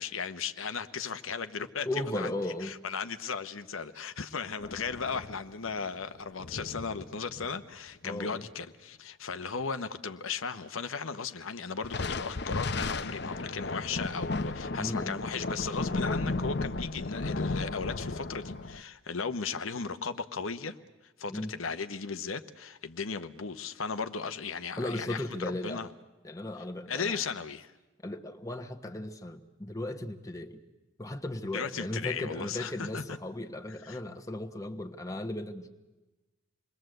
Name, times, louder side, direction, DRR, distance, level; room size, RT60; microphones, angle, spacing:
voice 1, 0.0-1.9 2.1-2.3 2.6-20.8 21.2-25.9 26.9-27.7 31.5-33.0 33.8-34.0, left 5 dB, 80° left, 10 dB, 1.0 m, -36 dB
voice 2, 1.8-2.7 8.0-8.4 14.8-15.2 21.3-21.5 24.8-25.9 26.2-27.2 28.0-30.6 31.0-35.7, left 1 dB, 15° left, 4 dB, 1.3 m, -36 dB
sound 1, 4.6-7.9 11.8-18.8, left 3 dB, 50° left, 0.8 m, -34 dB
28.0 x 21.5 x 7.9 m, 1.1 s
head